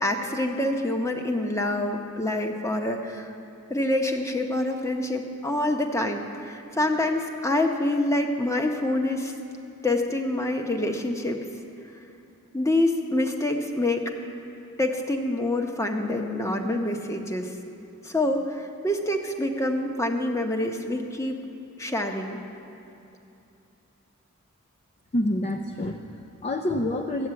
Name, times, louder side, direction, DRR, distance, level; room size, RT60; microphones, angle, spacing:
voice 1, 0.0-3.3 3.7-9.3 9.8-11.4 12.5-14.1 14.8-17.5 18.0-21.4 21.8-22.4, left 1 dB, 15° left, 3 dB, 0.9 m, -26 dB
voice 2, 25.1-27.3, left 1 dB, 30° left, 3 dB, 0.5 m, -27 dB
14.5 x 9.3 x 7.6 m, 2.7 s
head